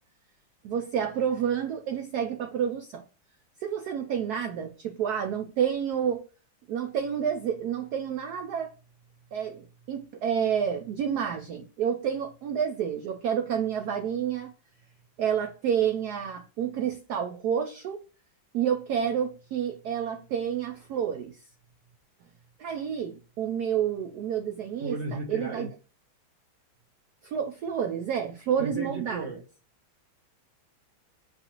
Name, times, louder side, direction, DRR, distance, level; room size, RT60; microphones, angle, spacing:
voice 1, 0.6-3.0 3.6-6.2 6.7-8.7 9.3-14.5 15.2-18.0 18.5-21.4 22.6-25.0 25.3-25.7 27.2-29.3, right 8 dB, 80° right, 0.8 m, -29 dB
voice 2, 24.8-25.7 28.6-29.4, right 3 dB, 50° right, 0.9 m, -34 dB
6.6 x 2.5 x 2.9 m
omnidirectional pair, 2.2 m